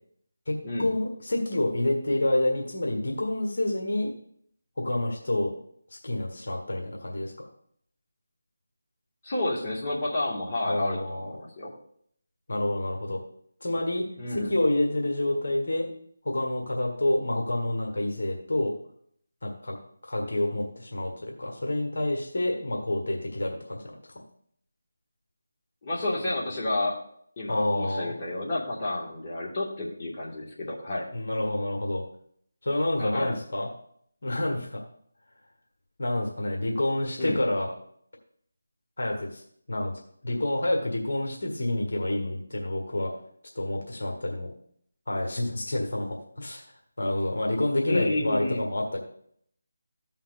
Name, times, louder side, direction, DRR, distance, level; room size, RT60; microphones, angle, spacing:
voice 1, 0.5-4.1 4.8-5.5 6.0-7.3 10.6-11.3 12.5-13.2 13.6-14.0 14.3-15.9 16.2-18.7 19.4-19.8 20.0-23.9 27.5-28.1 31.1-32.0 32.6-33.7 34.2-34.8 36.0-37.7 39.0-39.4 39.7-39.9 40.2-43.1 43.5-44.5 45.1-46.6 47.0-49.0, left 1 dB, 60° left, 1 dB, 1.5 m, -28 dB
voice 2, 9.2-11.7 14.2-14.6 25.8-27.0 27.4-31.1 33.0-33.3 37.2-37.4 47.9-48.7, left 2 dB, 30° left, -5 dB, 1.9 m, -30 dB
14.5 x 5.7 x 2.6 m, 0.66 s
figure-of-eight pair, 160°, 0 cm